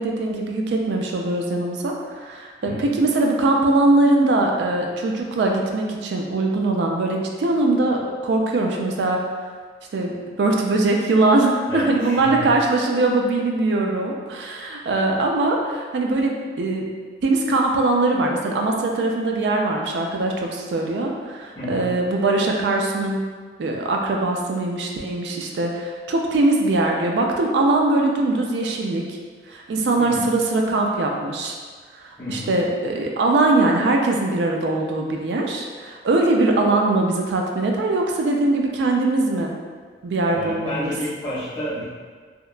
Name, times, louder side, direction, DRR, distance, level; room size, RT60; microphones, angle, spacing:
voice 1, 0.0-9.2 9.9-16.9 17.2-23.2 23.6-29.2 29.5-31.6 32.0-39.5 40.0-40.9, right 2 dB, 80° right, 1 dB, 0.4 m, -21 dB
voice 2, 2.6-2.9 11.7-12.5 21.5-21.9 30.0-30.3 32.2-32.6 40.3-41.8, left 1 dB, 20° left, -16 dB, 0.7 m, -30 dB
2.8 x 2.2 x 2.3 m, 1.5 s
head